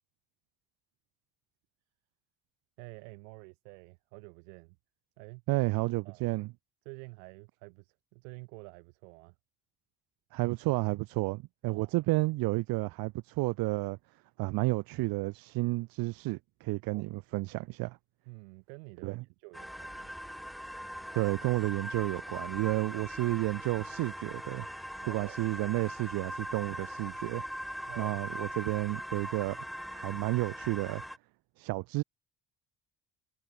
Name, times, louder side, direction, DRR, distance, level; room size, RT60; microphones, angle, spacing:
voice 1, 2.8-4.8 5.2-5.4 6.0-6.2 6.8-9.3 11.7-12.0 16.9-17.1 18.3-20.1 25.0-25.4 27.9-28.2, right 34 dB, 90° right, 2.6 m, -49 dB
voice 2, 5.5-6.5 10.3-14.0 14.4-18.0 19.0-19.2 21.1-24.7 25.1-29.6 29.9-31.0 31.6-32.0, right 21 dB, 70° right, 0.5 m, -31 dB
sound 1, 19.5-31.2, equal, ahead, 0.8 m, -41 dB
hypercardioid pair, 55°, 37 cm